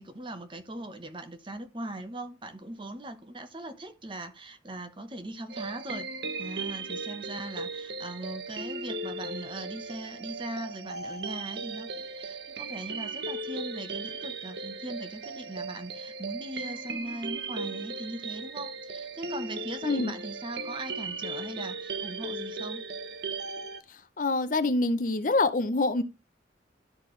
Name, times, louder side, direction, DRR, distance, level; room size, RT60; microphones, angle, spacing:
voice 1, 0.0-6.1 6.4-22.8, right 1 dB, 25° right, 1.0 m, -40 dB
sound 1, 5.5-23.8, right 3 dB, 60° right, 1.0 m, -37 dB
voice 2, 19.8-20.1 23.9-26.0, left 2 dB, 45° left, 0.6 m, -26 dB
12.0 x 4.4 x 3.2 m
head